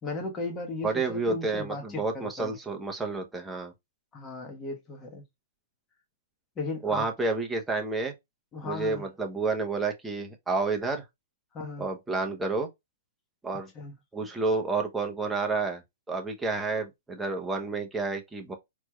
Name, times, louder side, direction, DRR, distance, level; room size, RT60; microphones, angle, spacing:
voice 1, 0.0-2.6 4.1-5.2 6.6-7.0 8.5-9.1 11.5-11.9 13.7-13.9, left 3 dB, 15° left, 1.2 m, -36 dB
voice 2, 0.8-3.7 6.8-8.1 8.6-11.0 11.8-12.7 13.4-13.7 14.1-15.8 16.1-18.6, right 3 dB, 5° right, 0.8 m, -30 dB
4.3 x 3.0 x 2.3 m
hypercardioid pair, 150°, 0 cm